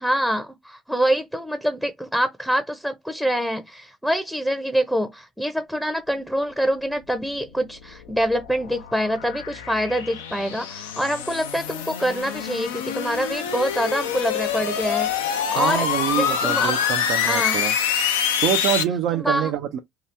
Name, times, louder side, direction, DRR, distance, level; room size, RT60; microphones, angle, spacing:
voice 1, 0.0-15.9 16.2-16.8 17.2-17.6 19.1-19.5, equal, ahead, 0.6 m, -25 dB
sound 1, 7.5-18.8, left 8 dB, 85° left, 0.4 m, -26 dB
voice 2, 15.5-17.7 18.3-19.8, right 11 dB, 65° right, 0.4 m, -25 dB
2.9 x 2.3 x 3.2 m
hypercardioid pair, 60°, 0 cm